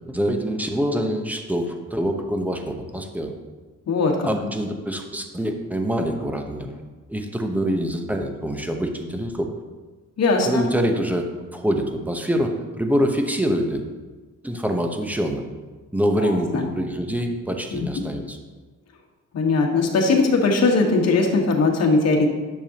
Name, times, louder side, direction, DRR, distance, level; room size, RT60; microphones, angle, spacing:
voice 1, 0.1-3.3 4.2-6.8 7.1-9.5 10.4-13.8 14.4-15.4 15.9-18.4, equal, 5° right, 4 dB, 1.0 m, -25 dB
voice 2, 3.9-4.3 10.2-10.7 16.2-16.6 17.7-17.8 19.3-22.3, left 3 dB, 55° left, 1 dB, 1.6 m, -20 dB
10.5 x 6.9 x 2.9 m, 1.3 s
cardioid pair, 90°, 30 cm